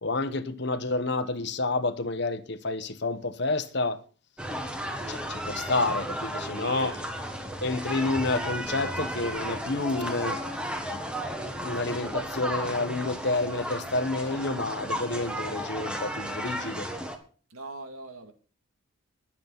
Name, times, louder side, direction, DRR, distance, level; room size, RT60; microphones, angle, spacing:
voice 1, 0.0-4.0 5.1-7.0 7.6-10.4 11.6-16.9, left 2 dB, 55° left, 1.1 m, -29 dB
sound 1, 4.4-17.2, equal, 5° right, 1.5 m, -34 dB
voice 2, 6.5-7.1 17.5-18.3, right 3 dB, 90° right, 2.4 m, -41 dB
21.0 x 7.5 x 4.1 m
head